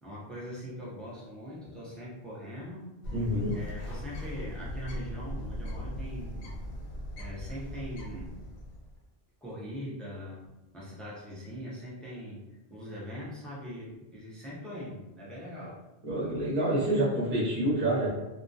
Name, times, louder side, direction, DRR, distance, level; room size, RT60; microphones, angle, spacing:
voice 1, 0.0-3.1 3.5-6.5 7.1-8.4 9.4-10.5 10.7-15.8, equal, ahead, -7 dB, 0.4 m, -42 dB
Bird, 3.0-9.0, equal, 80° left, 0.9 m, -39 dB
voice 2, 3.1-3.6 16.0-18.1, right 1 dB, 40° right, -8 dB, 0.8 m, -27 dB
2.2 x 2.2 x 2.6 m, 1.0 s
omnidirectional pair, 1.1 m